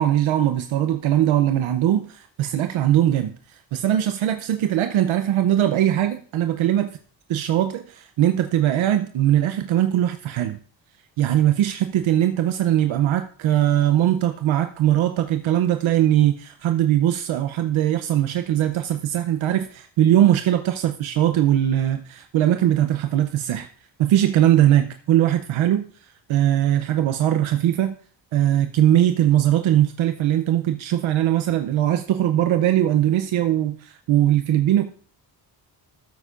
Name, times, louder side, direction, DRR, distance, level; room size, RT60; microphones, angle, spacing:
voice 1, 0.0-2.1 2.4-6.9 7.3-10.6 11.2-23.7 24.0-28.0 28.3-34.9, right 12 dB, 85° right, 7 dB, 0.7 m, -20 dB
14.5 x 8.2 x 2.5 m, 0.43 s
cardioid pair, 120°, 47 cm